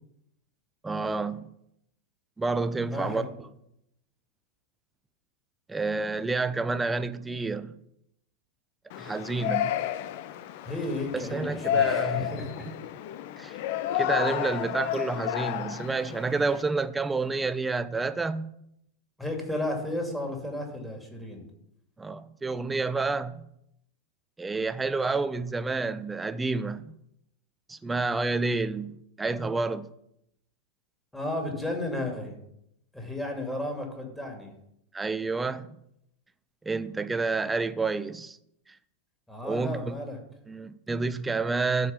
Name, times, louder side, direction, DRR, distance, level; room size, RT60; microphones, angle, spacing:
voice 1, 0.8-1.5 2.4-3.2 5.7-7.7 9.0-9.7 11.1-12.3 13.4-13.6 13.9-18.5 22.0-23.5 24.4-26.9 27.7-29.9 34.9-35.7 36.6-38.4 39.4-39.9 40.5-41.9, right 3 dB, 10° right, 0.6 m, -29 dB
voice 2, 2.9-3.3 10.6-12.7 19.2-21.5 31.1-32.3 32.9-34.5 39.3-40.2, left 1 dB, 5° left, 2.9 m, -33 dB
Yell, 8.9-16.6, left 11 dB, 50° left, 0.6 m, -31 dB
12.5 x 5.0 x 7.2 m
figure-of-eight pair, 90°, 0 cm